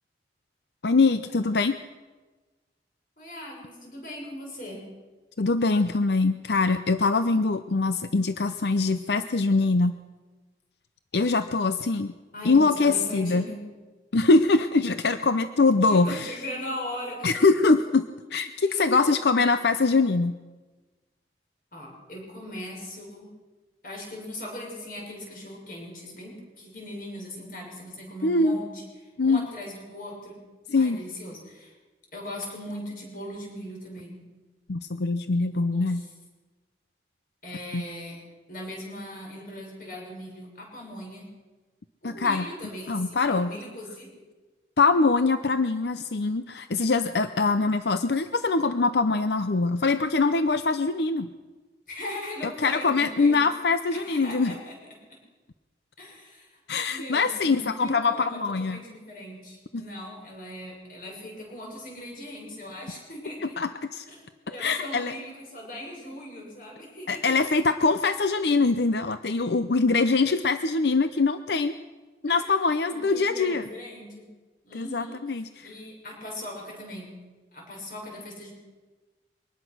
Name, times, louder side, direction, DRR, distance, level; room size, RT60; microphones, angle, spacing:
voice 1, 0.8-1.8 5.4-9.9 11.1-12.1 12.4-13.4 14.1-16.4 17.2-20.4 28.2-28.6 29.2-29.5 30.7-31.0 34.7-36.0 37.7-37.9 42.0-42.5 42.9-43.5 44.8-51.3 52.4-54.5 56.7-58.8 59.7-59.8 63.4-64.1 64.6-65.1 67.1-71.8 72.2-73.7 74.7-75.7, left 3 dB, 70° left, 10 dB, 0.7 m, -23 dB
voice 2, 3.2-4.8 12.3-13.6 15.9-17.3 18.7-19.0 21.7-23.3 23.8-30.4 30.8-31.7 32.1-34.2 35.5-36.0 37.4-38.2 38.5-41.3 42.0-44.1 51.9-53.4 53.9-54.8 56.0-56.6 56.9-63.6 64.1-64.2 64.5-67.4 72.3-72.5 72.9-74.3 74.6-75.2 75.6-77.1 77.5-78.5, left 1 dB, 50° left, -1 dB, 6.7 m, -39 dB
23.5 x 19.5 x 6.2 m, 1.3 s
head